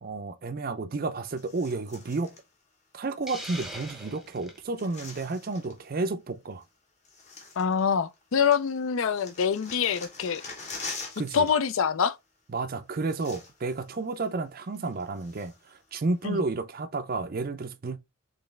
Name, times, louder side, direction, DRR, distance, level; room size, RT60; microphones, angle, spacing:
voice 1, 0.0-2.3 2.9-6.6 11.2-11.5 12.5-18.0, right 3 dB, 40° right, 0.4 m, -31 dB
sound 1, 1.4-2.4 3.2-4.3 4.5-5.8 6.6-6.7 7.0-8.2 8.5-11.5 11.8-12.0 12.7-12.8 13.0-13.8 14.1-14.2 14.7-15.7 16.2-16.3, left 4 dB, 30° left, 1.0 m, -44 dB
Hiss, 3.3-4.6, right 1 dB, ahead, 0.7 m, -41 dB
voice 2, 7.6-10.4 11.3-12.2 16.2-16.4, left 7 dB, 65° left, 0.4 m, -25 dB
4.3 x 3.2 x 3.2 m
head